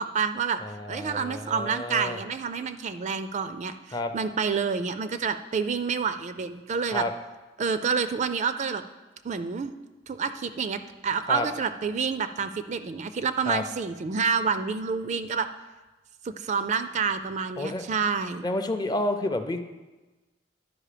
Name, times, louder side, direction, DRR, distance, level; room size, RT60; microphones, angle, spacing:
voice 1, 0.0-0.6 0.9-7.1 7.6-8.8 9.2-9.7 10.1-15.5 16.2-18.5, right 5 dB, 40° right, 11 dB, 0.4 m, -28 dB
voice 2, 0.6-2.2 3.9-4.1 6.9-7.1 11.3-11.5 13.5-13.6 17.6-17.8 18.4-19.6, left 2 dB, 20° left, 8 dB, 0.5 m, -30 dB
11.0 x 5.1 x 5.0 m, 1.2 s
head